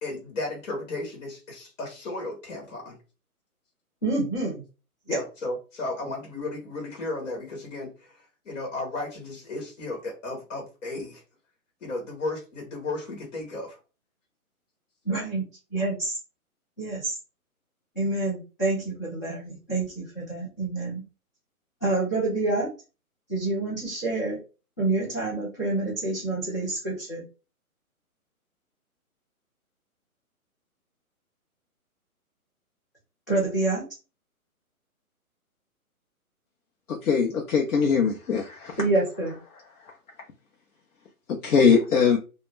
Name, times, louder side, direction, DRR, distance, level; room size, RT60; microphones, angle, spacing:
voice 1, 0.0-3.0 5.1-11.2 11.8-13.8, left 2 dB, 55° left, 0 dB, 1.0 m, -34 dB
voice 2, 4.0-4.6 5.1-5.2 15.0-15.4 15.7-16.2 16.8-17.2 17.9-21.0 21.8-22.7 23.3-24.4 24.8-27.2 33.3-33.8 38.8-39.4, right 2 dB, 15° left, -10 dB, 0.4 m, -27 dB
voice 3, 36.9-38.8 41.3-42.2, left 6 dB, 80° left, 0 dB, 0.7 m, -21 dB
2.2 x 2.1 x 3.2 m, 0.32 s
hypercardioid pair, 140°, 44 cm